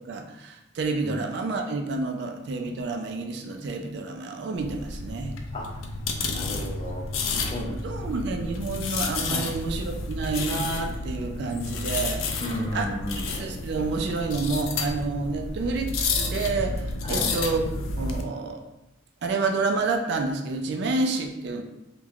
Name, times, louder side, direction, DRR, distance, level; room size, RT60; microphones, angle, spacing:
voice 1, 0.1-5.3 7.8-12.3 12.7-12.9 13.4-18.6 19.2-21.6, right 3 dB, 60° right, 4 dB, 0.3 m, -29 dB
sound 1, 4.6-18.2, left 3 dB, 85° left, 0.3 m, -31 dB
voice 2, 5.5-5.9 6.2-7.1 7.4-8.1 9.3-9.5 12.4-13.3 17.0-17.3, left 1 dB, 25° left, -2 dB, 0.4 m, -33 dB
3.2 x 2.1 x 2.3 m, 0.95 s
head